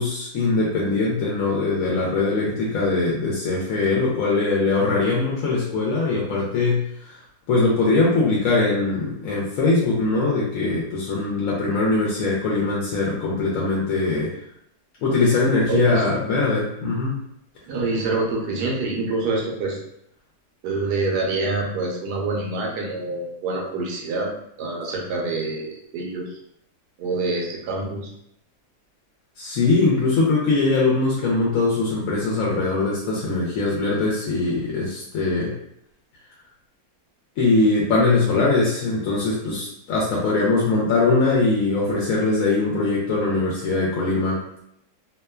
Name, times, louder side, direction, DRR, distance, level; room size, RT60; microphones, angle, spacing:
voice 1, 0.0-14.3 15.0-17.2 29.4-35.5 37.4-44.4, left 3 dB, 70° left, -4 dB, 0.8 m, -21 dB
voice 2, 15.7-16.0 17.7-19.8 20.6-24.3 24.6-26.3 27.0-28.1, right 3 dB, 80° right, -1 dB, 1.2 m, -26 dB
2.9 x 2.2 x 2.2 m, 0.73 s
omnidirectional pair, 1.7 m